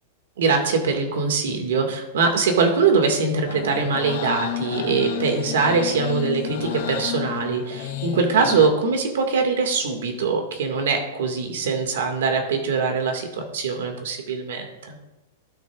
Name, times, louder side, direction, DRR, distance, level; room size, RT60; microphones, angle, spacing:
voice 1, 0.4-15.0, right 4 dB, 80° right, 4 dB, 2.1 m, -22 dB
sound 1, 3.5-8.7, left 9 dB, 70° left, 2.6 m, -30 dB
16.5 x 6.5 x 2.5 m, 1.0 s
supercardioid pair, 175°, 0 cm